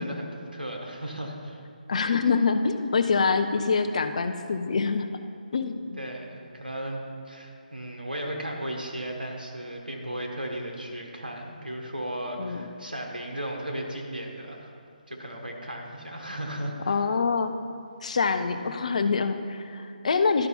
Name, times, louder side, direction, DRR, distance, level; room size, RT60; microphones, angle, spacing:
voice 1, 0.0-1.6 6.0-14.7 15.1-17.0 18.5-18.7, right 1 dB, 80° right, 0 dB, 1.4 m, -35 dB
voice 2, 1.9-5.1 5.5-6.0 12.4-12.7 16.9-17.5 18.0-20.5, left 4 dB, 50° left, 8 dB, 0.5 m, -25 dB
12.0 x 5.1 x 4.4 m, 2.4 s
figure-of-eight pair, 145°, 5 cm